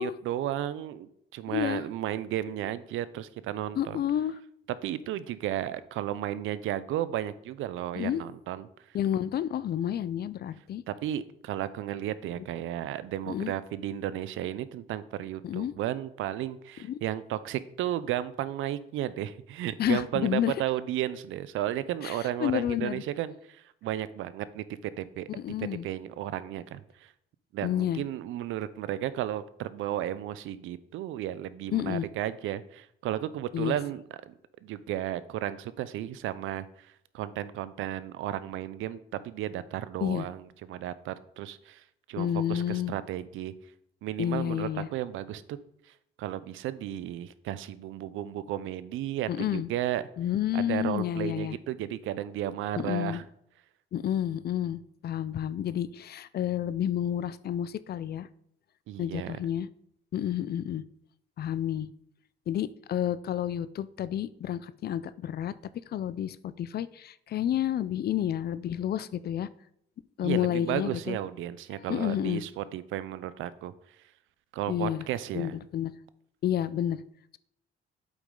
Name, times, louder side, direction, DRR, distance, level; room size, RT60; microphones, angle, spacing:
voice 1, 0.0-4.0 4.8-8.7 10.9-25.3 25.6-27.1 27.5-34.3 34.6-43.5 44.0-45.6 46.2-50.0 50.5-53.3 58.9-59.4 70.2-73.7 74.5-75.5, right 12 dB, 85° right, 15 dB, 0.5 m, -34 dB
voice 2, 1.5-1.8 3.8-4.3 8.0-8.2 8.9-10.8 13.3-13.5 15.4-15.7 16.8-17.0 19.8-20.5 22.0-23.0 25.3-25.9 27.6-28.0 31.7-32.1 33.5-33.8 40.0-40.3 42.2-42.9 44.2-44.9 49.3-49.7 50.2-51.6 52.8-53.2 53.9-58.3 59.0-59.7 60.1-60.8 61.4-61.9 62.5-65.5 65.9-69.5 70.2-71.2 71.9-72.4 74.7-75.0 75.3-75.9 76.4-77.0, left 10 dB, 55° left, 17 dB, 0.4 m, -30 dB
8.2 x 5.2 x 3.8 m, 0.74 s
cardioid pair, 90°, 20 cm